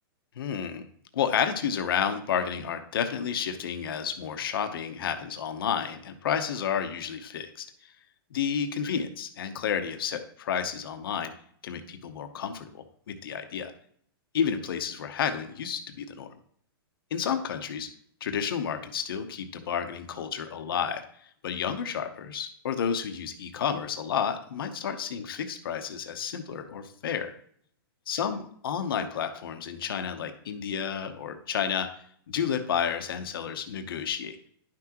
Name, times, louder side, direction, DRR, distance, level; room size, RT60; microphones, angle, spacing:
voice 1, 0.4-0.9 1.1-7.5 8.3-11.3 11.6-13.7 14.3-16.3 17.1-17.9 18.2-21.0 21.4-27.3 28.1-31.9 32.3-34.4, left 7 dB, 65° left, 7 dB, 0.9 m, -31 dB
10.5 x 6.0 x 3.0 m, 0.62 s
hypercardioid pair, 170°, 13 cm